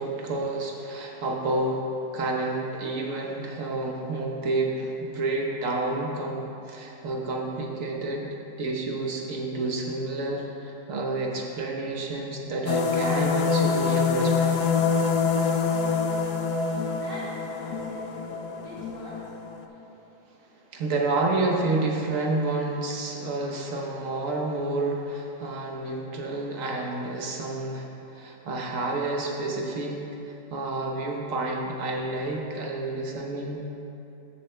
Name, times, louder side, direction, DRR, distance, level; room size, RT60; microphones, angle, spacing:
voice 1, 0.0-8.3 8.6-14.6 20.7-33.7, right 2 dB, 60° right, 0 dB, 1.2 m, -29 dB
sound 1, 12.7-19.6, left 5 dB, 85° left, 1.2 m, -25 dB
voice 2, 16.4-19.2 19.8-19.9 28.2-28.5, equal, 50° left, -11 dB, 2.3 m, -44 dB
14.0 x 7.4 x 2.2 m, 2.9 s
omnidirectional pair, 1.7 m